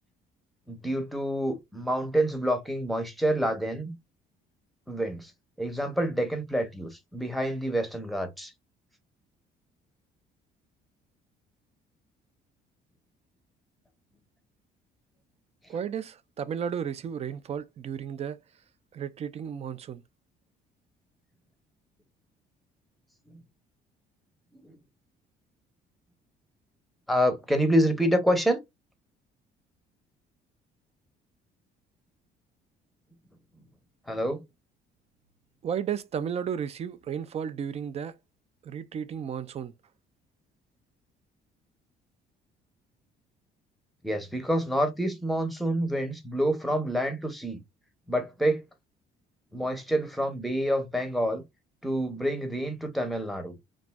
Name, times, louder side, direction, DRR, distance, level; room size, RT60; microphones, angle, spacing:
voice 1, 0.7-3.9 4.9-5.3 5.6-8.5 23.3-23.4 24.5-24.7 27.1-28.6 34.1-34.4 44.0-47.6 48.1-48.6 49.5-51.4 51.8-53.5, equal, ahead, 0.7 m, -27 dB
voice 2, 15.7-18.4 18.9-20.0 35.6-38.2 38.6-39.7, right 8 dB, 40° right, 0.4 m, -33 dB
3.1 x 2.5 x 2.2 m
cardioid pair, 110°, 17 cm